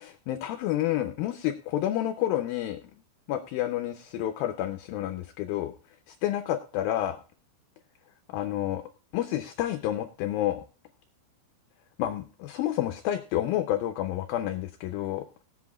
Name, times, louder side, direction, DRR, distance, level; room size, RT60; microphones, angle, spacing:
voice 1, 0.0-2.8 3.3-5.7 6.1-7.2 8.3-8.8 9.1-10.6 12.0-15.2, left 12 dB, 80° left, 7 dB, 2.2 m, -29 dB
20.0 x 7.7 x 2.3 m, 0.38 s
omnidirectional pair, 4.7 m